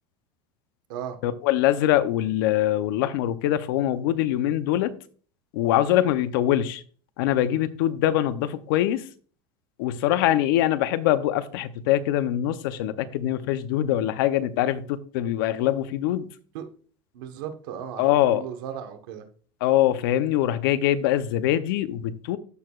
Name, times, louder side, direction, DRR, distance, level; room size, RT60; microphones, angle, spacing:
voice 1, 1.2-5.0 5.5-6.8 7.2-9.1 9.8-16.3 18.0-18.4 19.6-22.4, left 12 dB, 75° left, 0.6 m, -23 dB
voice 2, 17.1-18.0 18.3-19.3, right 9 dB, 70° right, 1.1 m, -36 dB
13.5 x 4.7 x 2.3 m
cardioid pair, 170°, 12 cm